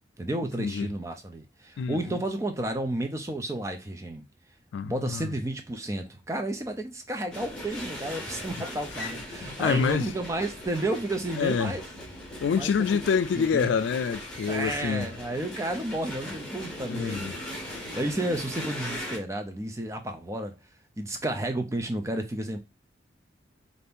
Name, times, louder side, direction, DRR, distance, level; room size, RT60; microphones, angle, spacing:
voice 1, 0.2-4.2 4.8-11.8 12.5-12.7 13.4-13.7 14.5-17.3 17.9-20.5 21.0-22.6, right 1 dB, 15° right, 0.4 m, -32 dB
voice 2, 4.7-5.3 9.4-10.1 11.4-11.8 12.4-15.1 16.9-17.3, left 6 dB, 80° left, 0.3 m, -27 dB
sound 1, 7.3-19.2, left 1 dB, 5° left, 0.8 m, -39 dB
2.7 x 2.5 x 3.5 m
head